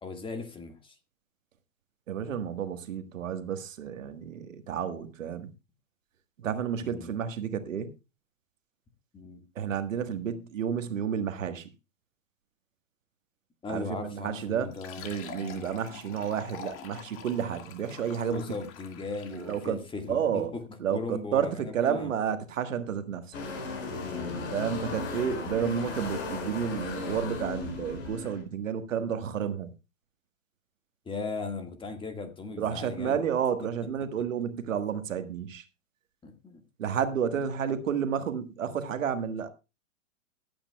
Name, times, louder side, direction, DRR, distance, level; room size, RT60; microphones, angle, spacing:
voice 1, 0.0-1.0 6.8-7.1 9.1-9.4 13.6-15.1 15.4-15.7 18.2-20.6 20.9-22.1 23.5-24.4 31.0-33.2 36.2-36.6, left 3 dB, 10° left, 1.7 m, -38 dB
voice 2, 2.1-5.5 6.4-7.9 9.5-11.7 13.7-14.7 15.0-18.4 19.3-19.8 20.1-20.5 20.8-23.4 24.5-29.7 32.6-35.6 36.8-39.5, right 8 dB, 70° right, 1.6 m, -31 dB
Fill (with liquid), 14.6-19.8, left 7 dB, 30° left, 1.8 m, -46 dB
sound 1, 23.3-28.4, left 3 dB, 60° left, 5.2 m, -36 dB
23.5 x 8.8 x 2.3 m
hypercardioid pair, 120°, 40 cm